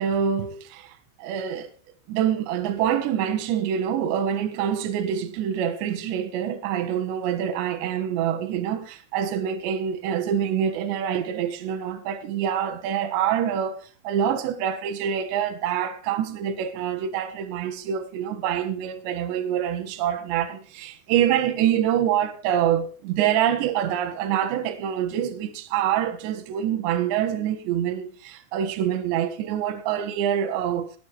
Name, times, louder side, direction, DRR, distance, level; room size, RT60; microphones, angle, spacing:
voice 1, 0.0-1.7 2.1-30.9, right 9 dB, 70° right, 3.5 m, -26 dB
19.5 x 8.5 x 4.9 m
omnidirectional pair, 5.6 m